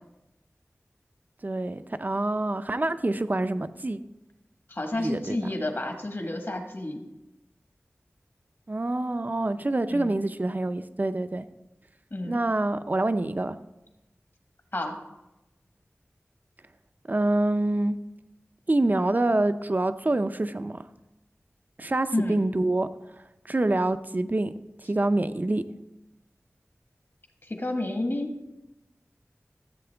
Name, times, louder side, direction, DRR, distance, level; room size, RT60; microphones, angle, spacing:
voice 1, 1.4-4.0 4.9-5.4 8.7-11.4 12.2-13.6 17.1-18.0 18.7-20.8 21.8-22.9 23.5-24.5 24.9-25.6, right 2 dB, 35° right, 11 dB, 0.5 m, -26 dB
voice 2, 4.7-7.1 9.9-10.2 12.1-12.4 14.7-15.0 22.1-22.4 27.5-28.3, left 1 dB, 55° left, 4 dB, 1.4 m, -30 dB
14.0 x 7.8 x 3.4 m, 0.99 s
wide cardioid pair, 60°, 5 cm